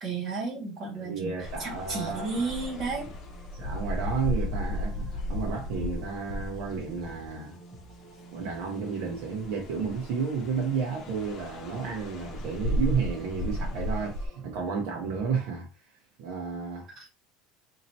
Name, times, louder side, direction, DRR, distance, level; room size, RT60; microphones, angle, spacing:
voice 1, 0.0-3.1 17.0-17.1, right 4 dB, 35° right, 1.9 m, -33 dB
voice 2, 1.0-2.5 3.5-7.6 8.3-15.7 16.2-17.1, right 5 dB, 70° right, 1.0 m, -32 dB
sound 1, 1.4-7.6 8.1-14.3, left 1 dB, 45° left, 0.9 m, -35 dB
sound 2, 1.4-15.4, right 1 dB, 15° right, 1.0 m, -50 dB
4.3 x 2.9 x 2.8 m
cardioid pair, 145°, 0 cm